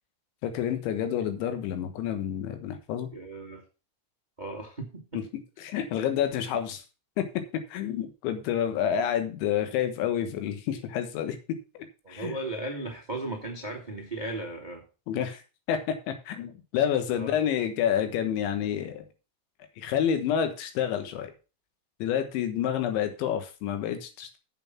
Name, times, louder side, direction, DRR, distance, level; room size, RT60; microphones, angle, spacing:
voice 1, 0.4-3.1 5.6-6.8 7.2-12.4 15.1-15.4 15.7-19.1 19.8-21.3 22.0-24.4, left 9 dB, 85° left, 8 dB, 3.8 m, -29 dB
voice 2, 3.1-3.6 4.4-5.2 12.0-14.8 17.1-17.4, right 2 dB, 30° right, 1 dB, 0.7 m, -36 dB
8.0 x 7.5 x 5.9 m, 0.33 s
omnidirectional pair, 5.2 m